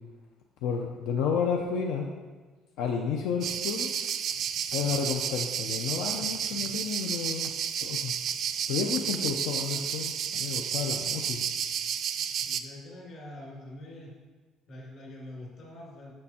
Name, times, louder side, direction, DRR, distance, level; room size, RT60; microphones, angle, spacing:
voice 1, 0.6-2.1 2.8-3.9 4.7-8.1 8.7-11.5, left 6 dB, 85° left, 2 dB, 0.6 m, -31 dB
sound 1, 3.4-12.6, right 8 dB, 45° right, 0.3 m, -31 dB
voice 2, 12.4-14.1 14.7-16.1, left 1 dB, 45° left, -3 dB, 2.3 m, -44 dB
6.8 x 6.2 x 4.2 m, 1.3 s
cardioid pair, 170°, 0 cm